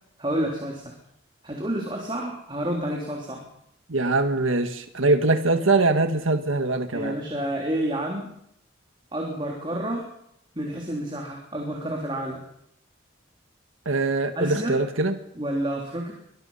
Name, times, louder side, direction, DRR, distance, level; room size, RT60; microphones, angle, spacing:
voice 1, 0.2-0.9 1.4-3.5 6.9-8.3 9.1-10.1 10.5-12.5 14.3-14.8 15.3-16.1, right 1 dB, 25° right, 0 dB, 3.4 m, -29 dB
voice 2, 3.9-7.1 13.8-15.2, right 2 dB, 90° right, 7 dB, 1.7 m, -22 dB
24.0 x 20.5 x 5.6 m, 0.74 s
head